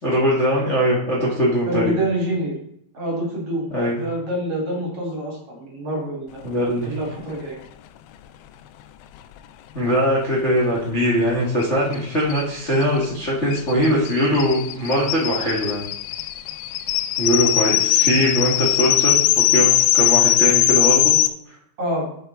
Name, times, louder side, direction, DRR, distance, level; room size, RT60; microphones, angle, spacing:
voice 1, 0.0-2.0 3.7-3.9 6.4-6.9 9.7-15.8 17.2-21.1, equal, 25° left, -5 dB, 1.7 m, -21 dB
voice 2, 1.6-2.6 2.9-6.4 6.8-7.6 21.8-22.1, right 1 dB, 40° right, -2 dB, 3.4 m, -26 dB
sound 1, 11.6-11.7 11.9-12.0 12.3-21.3, left 13 dB, 80° left, 2.2 m, -20 dB
8.1 x 7.8 x 3.9 m, 0.68 s
omnidirectional pair, 4.4 m